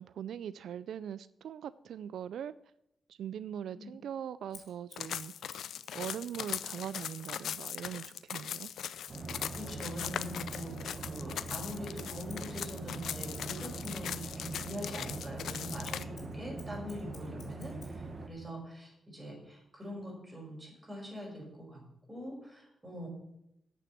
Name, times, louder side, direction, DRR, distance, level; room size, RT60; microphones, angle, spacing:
voice 1, 0.0-2.5 3.1-5.3 5.6-8.7, right 9 dB, 85° right, 16 dB, 0.3 m, -41 dB
Scissors, 4.5-7.5 8.0-12.9 13.3-18.0, left 5 dB, 65° left, 3.4 m, -56 dB
sound 1, 5.0-16.0, left 9 dB, 85° left, 0.4 m, -40 dB
sound 2, 9.1-18.3, right 3 dB, 35° right, 1.4 m, -42 dB
voice 2, 9.5-21.8 22.1-23.1, equal, 15° right, -2 dB, 5.2 m, -44 dB
8.6 x 6.9 x 8.3 m, 0.82 s
cardioid pair, 110°, 0 cm